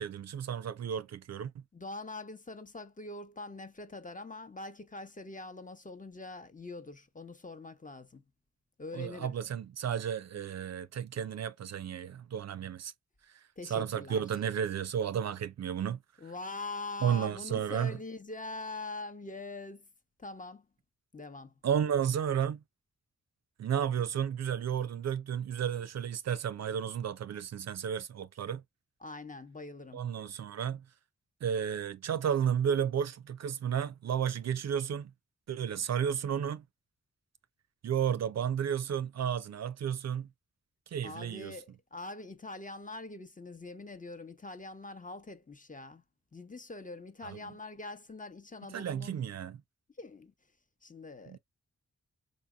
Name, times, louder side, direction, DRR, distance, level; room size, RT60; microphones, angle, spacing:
voice 1, 0.0-1.5 8.9-12.9 13.7-16.0 17.0-18.0 21.6-22.6 23.6-28.6 29.9-30.8 31.4-35.1 35.5-36.6 37.8-40.3 40.9-41.6 47.2-47.4 48.7-49.6 51.3-51.4, right 8 dB, 60° right, 0.4 m, -32 dB
voice 2, 1.7-8.2 8.8-9.3 13.6-14.2 16.2-19.9 20.2-20.7 21.1-21.5 29.0-30.0 41.0-46.0 46.3-49.3 50.0-50.3 50.8-51.4, left 2 dB, 25° left, 0.8 m, -43 dB
5.1 x 2.7 x 2.2 m
cardioid pair, 50°, 30 cm